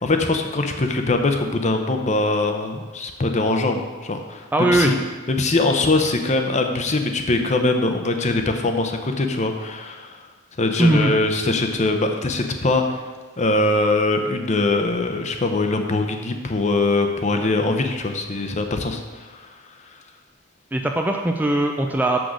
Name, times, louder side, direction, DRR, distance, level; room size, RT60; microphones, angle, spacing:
voice 1, 0.0-5.0 5.3-10.2 10.6-13.0 13.4-19.5, left 2 dB, 35° left, 5 dB, 0.7 m, -22 dB
voice 2, 4.5-4.9 10.8-11.1 20.7-22.2, right 1 dB, 10° right, 3 dB, 0.4 m, -19 dB
6.7 x 6.2 x 6.2 m, 1.3 s
head